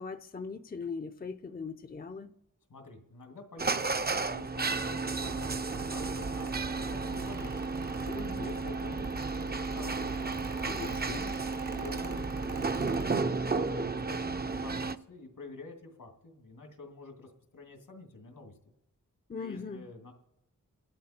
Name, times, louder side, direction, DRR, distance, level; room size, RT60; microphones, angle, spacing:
voice 1, 0.0-2.3 8.1-8.5 10.7-11.2 19.3-19.9, left 5 dB, 30° left, 0.6 m, -40 dB
voice 2, 2.7-7.7 8.4-11.3 11.7-13.0 13.5-18.6 19.3-20.1, left 3 dB, 85° left, 2.4 m, -48 dB
sound 1, 3.6-15.0, right 4 dB, 30° right, 0.6 m, -33 dB
Mechanical fan, 5.2-13.1, right 3 dB, 70° right, 1.1 m, -43 dB
29.0 x 11.5 x 4.3 m
wide cardioid pair, 65°, 32 cm